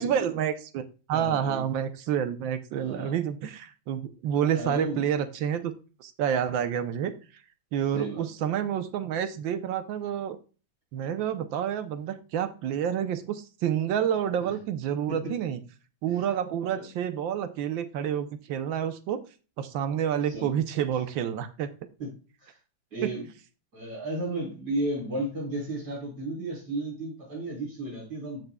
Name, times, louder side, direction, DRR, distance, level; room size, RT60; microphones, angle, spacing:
voice 1, 0.0-5.7 6.0-7.2 7.7-10.4 10.9-15.6 16.0-19.2 19.6-21.7 23.0-23.1, right 9 dB, 80° right, 10 dB, 1.5 m, -29 dB
voice 2, 1.1-1.6 2.8-3.1 4.3-5.0 7.9-8.2 14.4-14.5 15.1-15.3 16.1-16.2 20.3-20.5 22.0-22.1 22.4-22.6 22.9-23.3 23.7-28.4, right 1 dB, 55° right, -5 dB, 5.3 m, -33 dB
13.5 x 6.7 x 2.3 m, 0.35 s
omnidirectional pair, 2.1 m